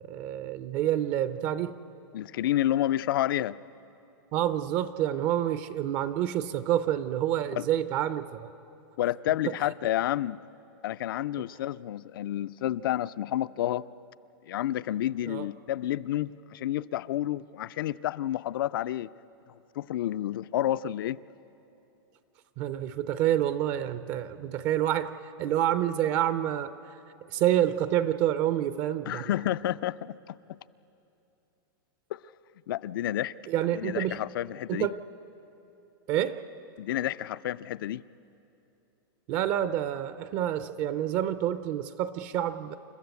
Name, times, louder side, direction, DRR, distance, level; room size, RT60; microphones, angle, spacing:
voice 1, 0.1-1.7 4.3-8.5 15.3-15.5 22.6-26.7 27.3-29.3 33.5-34.2 34.7-35.0 36.1-36.4 39.3-42.8, right 11 dB, 30° right, 13 dB, 0.5 m, -28 dB
voice 2, 2.1-3.6 7.6-7.7 9.0-10.4 10.8-13.8 14.5-19.1 19.8-21.2 29.1-30.6 32.1-32.2 32.7-33.3 33.7-34.9 36.8-38.0, left 13 dB, 65° left, 18 dB, 0.5 m, -30 dB
29.0 x 13.5 x 8.2 m, 2.9 s
supercardioid pair, 170°, 12 cm